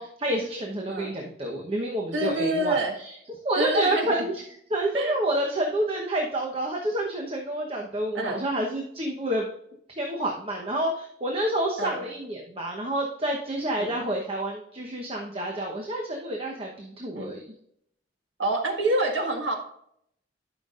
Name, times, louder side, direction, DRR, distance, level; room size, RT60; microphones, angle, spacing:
voice 1, 0.0-3.1 3.4-4.3 4.7-9.4 10.0-17.4, right 1 dB, 30° right, 0 dB, 1.1 m, -28 dB
voice 2, 2.1-2.9 3.6-4.3 4.9-5.1 8.1-8.4 11.8-12.0 13.8-13.9 17.1-17.4 18.4-19.6, right 1 dB, 90° right, 3 dB, 1.7 m, -27 dB
12.5 x 6.1 x 2.5 m, 0.70 s
head